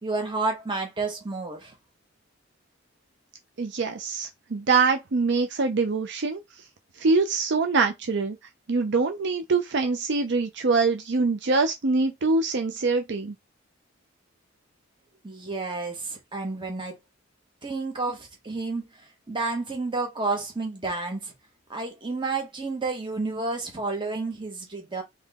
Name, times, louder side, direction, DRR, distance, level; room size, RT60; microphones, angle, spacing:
voice 1, 0.0-1.7 15.2-17.0 17.6-18.8 19.3-21.3 21.7-25.0, right 3 dB, 25° right, 1.4 m, -30 dB
voice 2, 3.6-6.4 7.0-8.4 8.7-13.3, right 4 dB, 60° right, 0.6 m, -24 dB
3.8 x 3.1 x 3.5 m
head